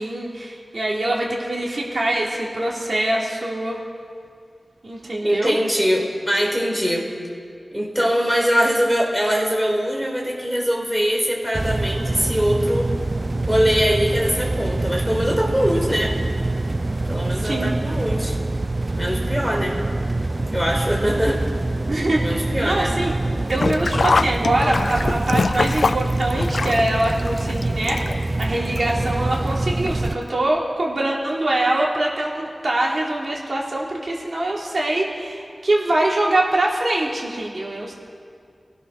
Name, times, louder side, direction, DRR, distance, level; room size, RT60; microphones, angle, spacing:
voice 1, 0.0-3.8 4.8-5.6 17.4-17.7 21.9-22.2 22.6-23.1 23.5-37.9, right 1 dB, 55° right, -3 dB, 4.1 m, -23 dB
voice 2, 5.2-7.1 7.7-12.9 13.5-16.2 17.1-18.4 19.0-19.8 20.5-21.4 22.2-22.9, equal, 5° right, -1 dB, 4.8 m, -22 dB
sound 1, 11.5-30.1, right 2 dB, 35° right, 0.7 m, -25 dB
Sink (filling or washing), 23.5-28.4 28.7-28.8 29.9-30.0 30.3-30.4, left 4 dB, 70° left, 0.5 m, -23 dB
29.0 x 19.0 x 6.4 m, 2.2 s
wide cardioid pair, 75°, 0 cm